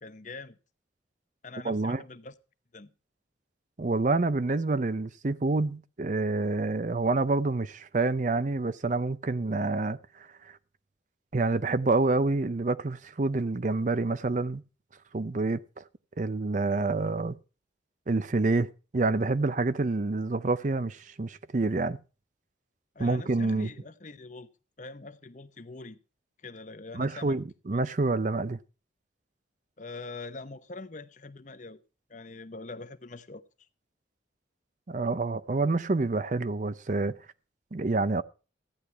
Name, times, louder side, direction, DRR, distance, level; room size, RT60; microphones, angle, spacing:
voice 1, 0.0-0.6 1.4-2.3 2.7-2.9 22.9-24.5 24.8-26.0 26.4-27.4 27.7-27.8 29.8-31.8 32.1-33.4, left 3 dB, 40° left, 0.8 m, -43 dB
voice 2, 1.6-2.0 3.8-10.3 11.3-14.6 15.1-15.8 16.2-17.4 18.1-22.0 23.0-23.7 26.9-28.6 34.9-37.1 37.7-38.2, right 3 dB, 40° right, 0.5 m, -27 dB
14.5 x 10.0 x 4.5 m
head